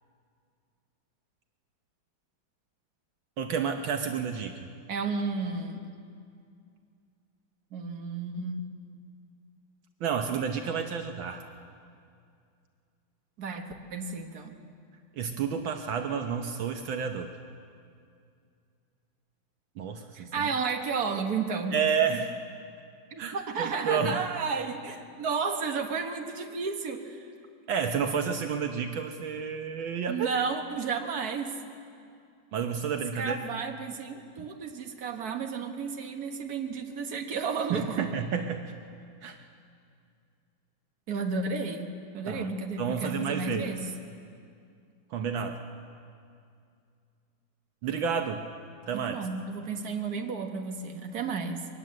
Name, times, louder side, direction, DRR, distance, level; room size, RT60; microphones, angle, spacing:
voice 1, 3.4-4.7 10.0-11.4 15.2-17.3 19.8-20.5 21.7-22.3 23.2-24.2 27.7-30.3 32.5-33.4 37.7-38.8 39.2-39.4 42.3-42.5 42.8-43.7 45.1-45.6 47.8-48.4 48.9-49.2, right 7 dB, 75° right, 5 dB, 1.7 m, -30 dB
voice 2, 4.9-5.8 7.7-8.7 13.4-14.6 20.1-21.7 23.1-27.3 30.1-31.5 33.2-38.1 41.1-41.9 42.1-43.9 48.9-51.7, right 5 dB, 50° right, 4 dB, 1.9 m, -32 dB
22.5 x 19.0 x 7.6 m, 2.4 s
omnidirectional pair, 2.2 m